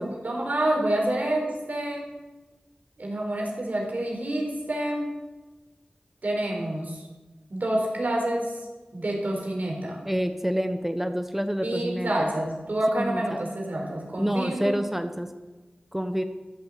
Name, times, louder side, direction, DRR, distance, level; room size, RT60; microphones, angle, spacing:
voice 1, 0.0-2.1 3.0-5.1 6.2-7.0 7.5-8.5 8.9-10.0 11.6-14.8, right 1 dB, 65° right, -1 dB, 4.5 m, -28 dB
voice 2, 10.0-12.1 13.0-13.4 14.2-15.3 15.9-16.2, equal, 10° right, 8 dB, 1.0 m, -27 dB
14.0 x 9.4 x 7.6 m, 1.2 s
cardioid pair, 40°, 3 cm